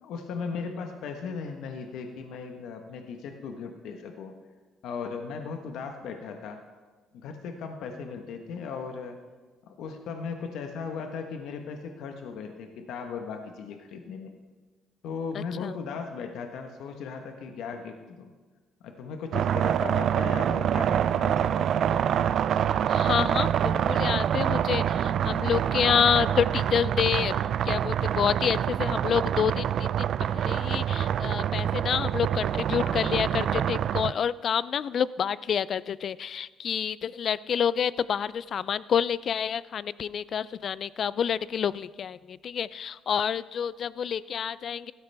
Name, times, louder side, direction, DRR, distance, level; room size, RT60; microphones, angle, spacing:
voice 1, 0.0-4.3 4.8-6.6 7.1-9.2 9.6-14.3 15.0-18.3 18.8-22.2, left 5 dB, 75° left, 5 dB, 1.1 m, -37 dB
voice 2, 15.3-15.7 22.9-44.9, left 8 dB, 50° left, 19 dB, 0.4 m, -28 dB
sound 1, 19.3-34.1, right 9 dB, 55° right, 0.3 m, -26 dB
16.0 x 13.0 x 3.4 m, 1.3 s
cardioid pair, 110°, 0 cm